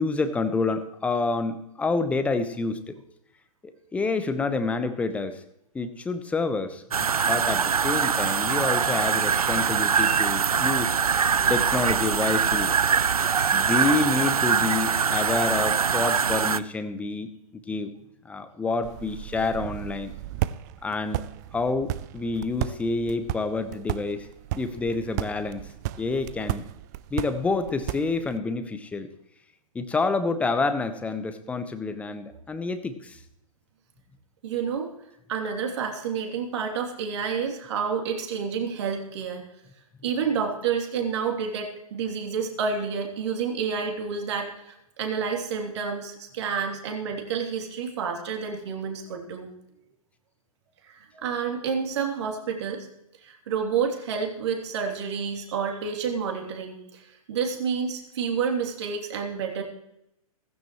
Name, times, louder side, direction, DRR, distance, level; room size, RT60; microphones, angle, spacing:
voice 1, 0.0-3.0 3.9-5.4 5.7-11.0 11.4-12.7 13.5-17.3 17.7-17.9 18.2-20.1 20.8-21.2 21.5-24.3 24.5-25.6 26.0-26.6 27.1-29.1 29.7-33.2, left 3 dB, 5° left, 10 dB, 0.9 m, -28 dB
sound 1, 6.9-16.6, right 6 dB, 70° right, 0.6 m, -23 dB
sound 2, 18.8-28.4, right 15 dB, 30° right, 0.4 m, -34 dB
voice 2, 34.4-34.9 35.3-39.4 40.0-49.5 50.9-52.9 53.2-59.6, right 6 dB, 45° right, 2 dB, 3.0 m, -29 dB
16.5 x 15.5 x 3.1 m, 0.80 s
figure-of-eight pair, 115°, 19 cm